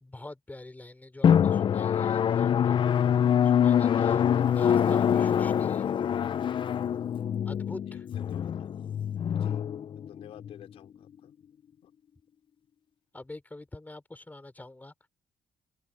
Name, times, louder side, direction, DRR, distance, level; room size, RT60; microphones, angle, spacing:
voice 1, 0.0-2.8 3.4-5.9 7.4-8.1 13.1-14.9, left 2 dB, 15° left, 4.3 m, -45 dB
Drum, 1.2-10.5, left 8 dB, 55° left, 0.6 m, -25 dB
voice 2, 7.9-8.7 9.3-9.6 10.0-11.3 11.8-11.9, left 11 dB, 80° left, 4.9 m, -52 dB
open air
supercardioid pair, 60°, 10 cm